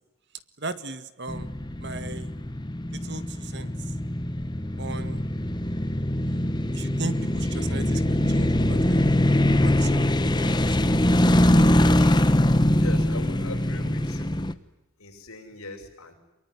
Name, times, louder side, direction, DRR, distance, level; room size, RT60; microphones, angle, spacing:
voice 1, 0.6-1.5 1.8-2.3 2.9-4.0 4.8-5.2 6.7-9.1 9.6-10.8, right 3 dB, 50° right, 11 dB, 1.9 m, -37 dB
sound 1, 1.3-14.5, left 1 dB, 20° left, 1.0 m, -23 dB
voice 2, 12.8-14.4 15.0-16.1, left 2 dB, 80° left, 3 dB, 6.5 m, -40 dB
24.0 x 23.5 x 9.8 m, 0.96 s
head